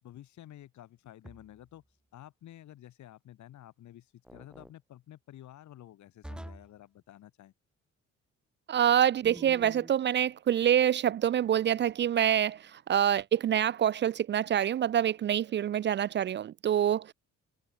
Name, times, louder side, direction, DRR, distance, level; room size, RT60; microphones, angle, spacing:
voice 1, 0.0-1.8 2.1-7.5, left 13 dB, 75° left, 3.8 m, -51 dB
sound 1, 1.2-1.7 4.2-4.7 6.2-6.8 9.2-10.0, right 1 dB, 5° right, 0.7 m, -47 dB
voice 2, 8.7-17.1, right 10 dB, 40° right, 0.4 m, -26 dB
cardioid pair, 170°, 29 cm